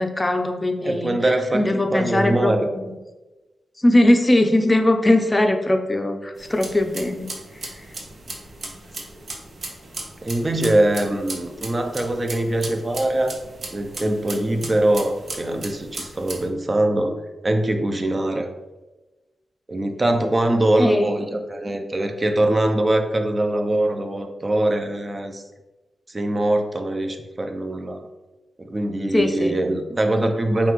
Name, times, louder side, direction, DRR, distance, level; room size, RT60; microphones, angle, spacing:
voice 1, 0.0-1.2 1.5-2.5 3.8-7.3 7.6-7.7 20.8-21.1 29.1-29.5, left 1 dB, 20° left, 6 dB, 0.5 m, -20 dB
voice 2, 0.8-2.7 10.2-13.4 13.7-18.5 19.7-25.4 26.1-28.1 28.6-30.7, right 1 dB, 35° right, 5 dB, 0.6 m, -22 dB
sound 1, 6.4-16.5, right 2 dB, 60° right, 0.8 m, -37 dB
5.5 x 2.5 x 3.1 m, 1.1 s
cardioid pair, 60°, 0 cm